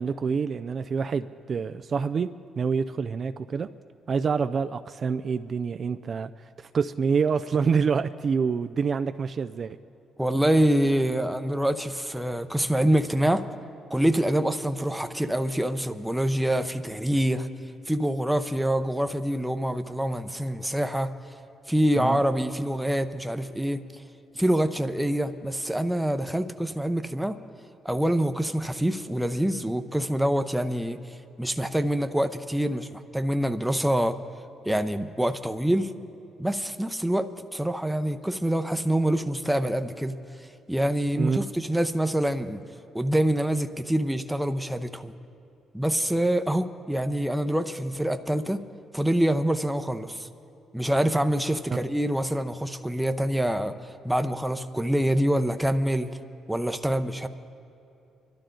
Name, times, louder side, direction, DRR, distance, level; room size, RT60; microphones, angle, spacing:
voice 1, 0.0-2.3 2.6-3.7 4.1-6.3 6.6-9.8 22.0-22.2 41.2-41.4 51.7-51.8, right 5 dB, 45° right, 10 dB, 0.4 m, -27 dB
voice 2, 10.2-13.4 13.9-17.5 17.9-21.1 21.7-24.0 24.4-27.4 27.8-34.2 34.6-35.9 36.4-40.2 40.7-42.6 42.9-45.1 45.7-48.6 48.9-50.3 50.7-53.8 54.0-56.1 56.5-57.3, right 1 dB, 5° right, 9 dB, 0.7 m, -25 dB
24.5 x 12.0 x 3.9 m, 2.7 s
cardioid pair, 90°, 0 cm